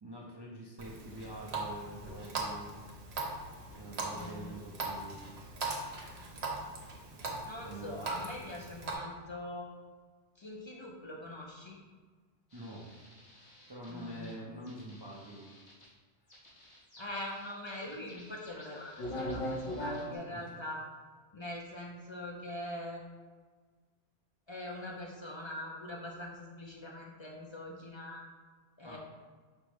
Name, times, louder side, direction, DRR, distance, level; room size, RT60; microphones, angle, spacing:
voice 1, 0.0-2.7 3.7-5.2 7.6-8.0 12.5-15.5 20.3-20.5 28.8-29.0, right 1 dB, 35° right, -5 dB, 0.4 m, -46 dB
Water tap faucet, 0.8-9.0, right 3 dB, 70° right, 1.0 m, -40 dB
voice 2, 4.1-4.6 7.4-9.7 10.4-11.8 13.9-14.4 17.0-20.8 21.3-23.0 24.5-28.2 28.8-29.0, left 1 dB, 45° left, -2 dB, 0.3 m, -43 dB
sound 1, 12.5-14.3 14.7-15.8 16.3-20.2, equal, 75° left, 1.7 m, -42 dB
5.3 x 2.0 x 4.7 m, 1.5 s
omnidirectional pair, 1.1 m